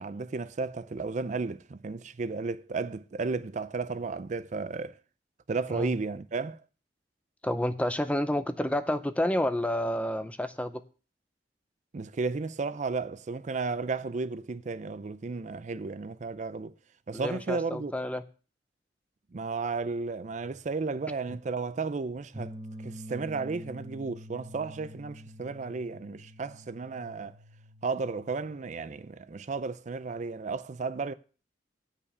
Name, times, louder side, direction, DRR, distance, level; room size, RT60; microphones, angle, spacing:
voice 1, 0.0-5.0 5.5-6.6 11.9-16.7 17.1-17.9 19.3-22.5 22.8-27.4 27.8-31.1, right 4 dB, 40° right, 0.4 m, -33 dB
voice 2, 7.4-10.8 17.1-18.2 21.3-21.4, left 1 dB, 10° left, 0.5 m, -29 dB
sound 1, 22.3-29.0, equal, 20° right, 0.8 m, -46 dB
8.7 x 5.5 x 6.9 m
head